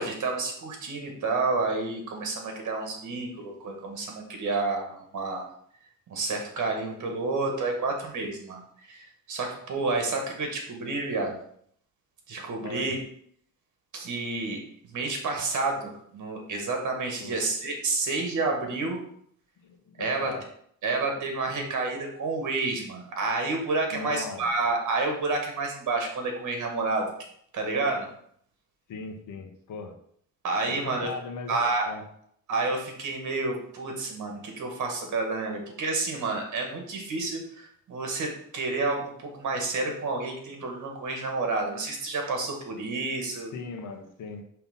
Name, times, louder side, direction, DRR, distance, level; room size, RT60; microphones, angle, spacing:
voice 1, 0.0-5.4 6.1-8.6 8.9-11.4 12.3-13.0 13.9-14.6 14.9-19.0 20.0-20.4 20.8-27.1 27.5-28.1 30.4-31.1 31.5-31.9 32.5-43.5, right 3 dB, 60° right, 2 dB, 1.8 m, -29 dB
voice 2, 12.6-13.0 17.2-17.4 19.6-20.5 23.9-24.4 28.9-30.0 30.7-32.0 43.5-44.4, left 4 dB, 70° left, 4 dB, 1.1 m, -38 dB
5.8 x 3.3 x 5.5 m, 0.66 s
cardioid pair, 120°, 33 cm